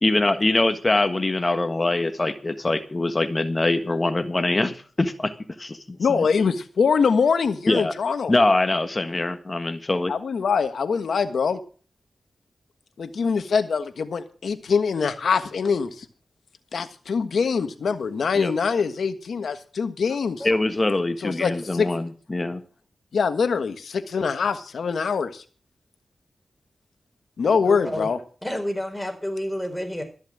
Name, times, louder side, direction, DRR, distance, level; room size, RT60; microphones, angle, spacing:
voice 1, 0.0-5.3 5.6-6.3 7.7-7.9 8.3-10.1 18.4-18.5 20.4-22.6, left 2 dB, 35° left, 1.4 m, -23 dB
voice 2, 6.0-8.3 10.1-11.6 13.0-16.0 16.7-20.5 21.2-21.9 23.1-25.4 27.4-28.2, left 5 dB, 80° left, 1.4 m, -23 dB
voice 3, 27.6-28.1 28.4-30.0, equal, 10° left, 4.4 m, -30 dB
13.5 x 7.3 x 7.5 m
cardioid pair, 60°, 0 cm